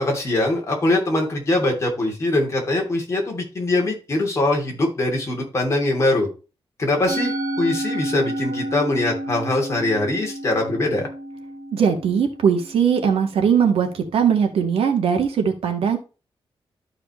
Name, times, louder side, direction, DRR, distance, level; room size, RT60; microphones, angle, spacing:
voice 1, 0.0-6.3 6.8-11.1, left 2 dB, 30° left, 0 dB, 2.7 m, -22 dB
Musical instrument, 7.1-13.5, right 1 dB, 30° right, 2.6 m, -30 dB
voice 2, 11.7-16.0, right 7 dB, 90° right, 4 dB, 1.7 m, -20 dB
12.0 x 5.0 x 3.1 m, 0.32 s
wide cardioid pair, 165°, 10 cm